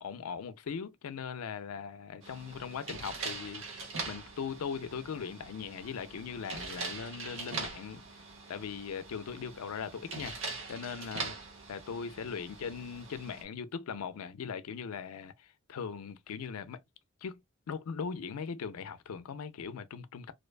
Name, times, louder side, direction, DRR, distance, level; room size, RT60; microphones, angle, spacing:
voice 1, 0.0-8.0 8.5-10.4 10.7-11.4 11.7-16.8 17.2-17.4 17.7-20.3, left 6 dB, 90° left, 0.4 m, -39 dB
sound 1, 2.2-13.4, right 4 dB, 60° right, 0.8 m, -42 dB
2.5 x 2.2 x 2.3 m
head